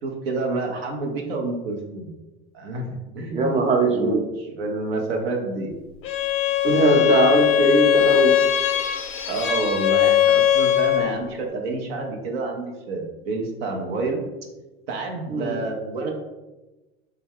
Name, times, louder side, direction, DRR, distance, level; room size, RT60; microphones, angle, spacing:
voice 1, 0.0-2.1 2.5-3.6 3.9-5.7 9.3-14.2 14.9-16.1, right 3 dB, 85° right, 2 dB, 0.7 m, -28 dB
voice 2, 3.3-4.2 6.6-8.3 15.3-15.6, right 2 dB, 20° right, 0 dB, 0.7 m, -20 dB
Bowed string instrument, 6.0-11.2, left 11 dB, 45° left, 0.4 m, -20 dB
3.2 x 2.2 x 3.4 m, 1.1 s
hypercardioid pair, 80°, 30 cm